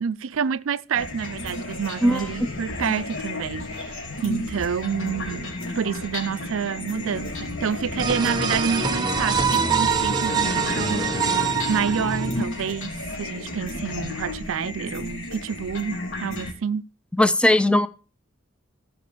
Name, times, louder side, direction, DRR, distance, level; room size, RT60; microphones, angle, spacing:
voice 1, 0.0-11.3 11.7-16.9, right 7 dB, 80° right, 0.5 m, -28 dB
sound 1, 0.9-16.5, left 2 dB, 90° left, 3.0 m, -33 dB
sound 2, 5.5-12.4, left 3 dB, 45° left, 0.9 m, -35 dB
sound 3, 8.0-12.6, right 6 dB, 20° right, 1.1 m, -24 dB
voice 2, 17.2-17.9, left 1 dB, 5° left, 0.5 m, -18 dB
14.0 x 5.7 x 6.8 m
head